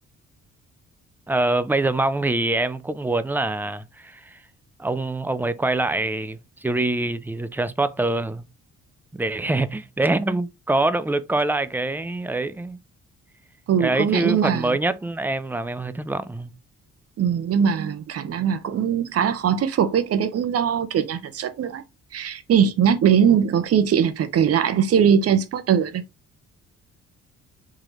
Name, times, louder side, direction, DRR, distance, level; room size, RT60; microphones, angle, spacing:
voice 1, 1.3-4.4 4.8-8.5 9.1-12.8 13.8-16.5, right 2 dB, 5° right, 0.4 m, -24 dB
voice 2, 13.7-14.8 17.2-21.8 22.1-26.0, right 8 dB, 50° right, 0.7 m, -21 dB
3.8 x 3.2 x 3.0 m
cardioid pair, 90°, 30 cm